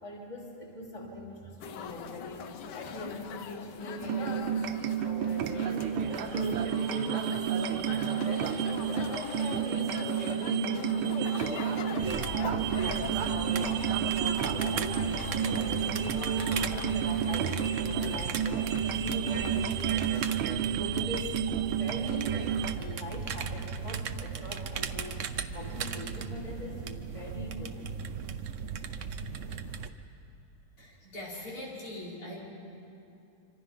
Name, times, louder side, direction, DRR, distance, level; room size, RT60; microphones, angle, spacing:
voice 1, 0.0-8.6 8.9-12.0 12.2-15.0 15.3-25.3 25.5-27.8, left 1 dB, 15° left, -2 dB, 3.0 m, -41 dB
sound 1, 1.6-20.4, left 7 dB, 65° left, 1.3 m, -42 dB
Mridangam morsing and bells in electroacoustic music, 4.0-22.7, right 9 dB, 85° right, 1.6 m, -31 dB
sound 2, 12.0-29.9, right 6 dB, 65° right, 0.7 m, -37 dB
voice 2, 30.8-32.4, left 1 dB, 90° left, -6 dB, 6.1 m, -41 dB
26.0 x 25.5 x 5.7 m, 2.6 s
omnidirectional pair, 2.3 m